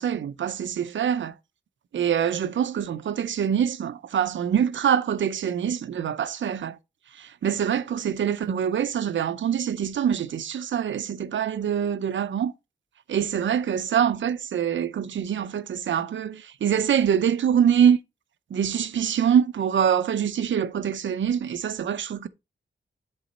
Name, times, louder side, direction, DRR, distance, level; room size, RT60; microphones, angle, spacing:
voice 1, 0.0-1.3 1.9-6.8 7.2-12.5 13.1-18.0 18.5-22.3, right 8 dB, 85° right, 0.7 m, -24 dB
11.0 x 4.1 x 4.1 m
wide cardioid pair, 135°, 19 cm